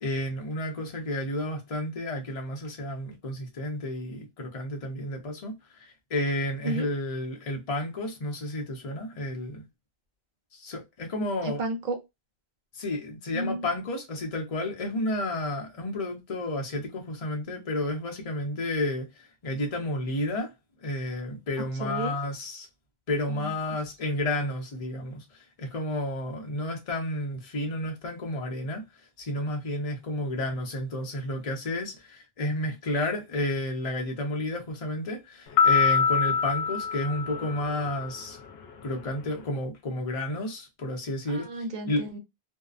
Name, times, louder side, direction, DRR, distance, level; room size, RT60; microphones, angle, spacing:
voice 1, 0.0-9.6 10.5-11.6 12.7-20.5 20.8-22.7 23.1-28.8 29.2-38.4 38.8-41.5 41.9-42.0, left 1 dB, 35° left, 0.8 m, -31 dB
voice 2, 11.4-12.0 13.3-13.7 21.8-22.2 23.3-23.5 41.3-42.2, right 2 dB, 50° right, 0.8 m, -32 dB
sound 1, 35.6-38.1, left 6 dB, 75° left, 0.9 m, -24 dB
2.7 x 2.1 x 2.4 m
omnidirectional pair, 1.1 m